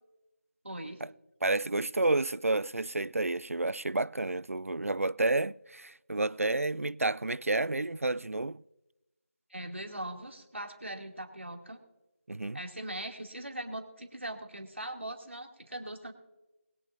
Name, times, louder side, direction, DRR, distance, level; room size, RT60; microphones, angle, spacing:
voice 1, 0.6-1.0 9.5-11.8 12.5-16.1, right 1 dB, 60° right, 2.4 m, -40 dB
voice 2, 1.4-8.6 12.3-12.6, right 2 dB, 85° right, 0.4 m, -30 dB
21.0 x 10.5 x 2.6 m
figure-of-eight pair, 170°, 7 cm